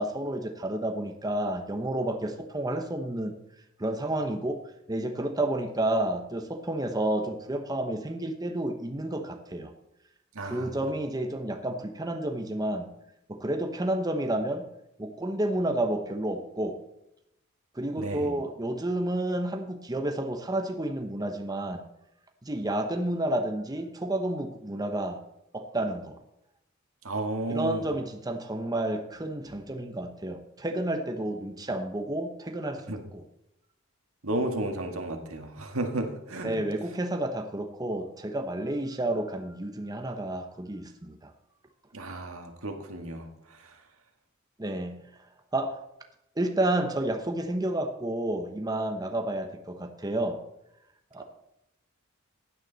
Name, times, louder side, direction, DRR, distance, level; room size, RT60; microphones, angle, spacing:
voice 1, 0.0-3.3 3.8-4.6 4.9-9.7 10.4-12.9 13.3-14.7 15.0-16.8 17.7-21.8 22.4-25.2 25.5-26.2 27.5-33.2 36.4-41.3 44.6-45.0 45.5-45.8 46.4-50.4 51.1-51.2, right 1 dB, 20° right, 5 dB, 0.9 m, -30 dB
voice 2, 10.4-10.7 18.0-18.3 27.0-27.9 32.9-33.0 34.2-36.6 41.9-43.3, right 2 dB, 85° right, 4 dB, 1.8 m, -32 dB
15.5 x 9.7 x 4.0 m, 0.84 s
head